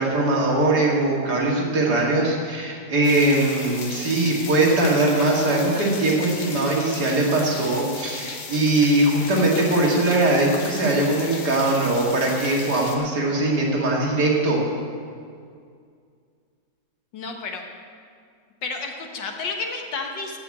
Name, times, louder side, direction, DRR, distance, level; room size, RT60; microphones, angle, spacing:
voice 1, 0.0-14.6, right 2 dB, 65° right, -3 dB, 2.8 m, -21 dB
sound 1, 3.0-13.0, left 5 dB, 70° left, 1.8 m, -37 dB
voice 2, 17.1-17.6 18.6-20.4, left 4 dB, 90° left, 3 dB, 2.0 m, -31 dB
14.5 x 6.0 x 8.6 m, 2.2 s
omnidirectional pair, 1.9 m